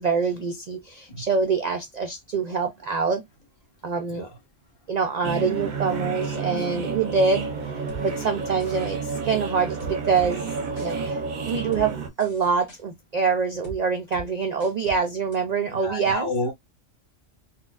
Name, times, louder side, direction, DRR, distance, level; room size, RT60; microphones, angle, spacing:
voice 1, 0.0-3.2 3.8-4.3 4.9-7.5 8.0-16.3, right 5 dB, 90° right, 0.3 m, -25 dB
voice 2, 4.1-4.4 15.7-16.5, left 2 dB, 25° left, 0.9 m, -30 dB
sound 1, 5.2-12.1, right 5 dB, 45° right, 0.7 m, -30 dB
sound 2, 7.9-8.0 8.6-9.0 9.8-10.3 10.8-10.9 11.5-11.9 12.2-12.8 13.6-13.8 14.1-14.3 14.6-15.0 15.3-15.4, right 4 dB, 65° left, 1.8 m, -40 dB
4.0 x 2.2 x 2.2 m
omnidirectional pair, 1.3 m